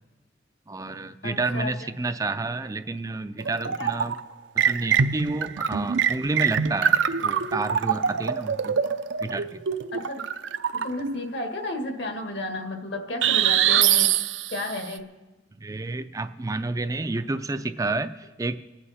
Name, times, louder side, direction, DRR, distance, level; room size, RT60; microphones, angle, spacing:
voice 1, 0.7-4.2 4.6-8.8 9.2-9.6 15.6-18.6, right 2 dB, 20° right, 10 dB, 0.3 m, -30 dB
voice 2, 1.2-1.7 3.8-3.9 9.9-10.2 10.7-14.2 14.5-15.1, left 2 dB, 65° left, 4 dB, 1.7 m, -32 dB
sound 1, 3.4-4.2 4.6-11.2 13.2-14.8, right 8 dB, 80° right, 0.6 m, -24 dB
25.0 x 9.6 x 4.2 m, 1.1 s
head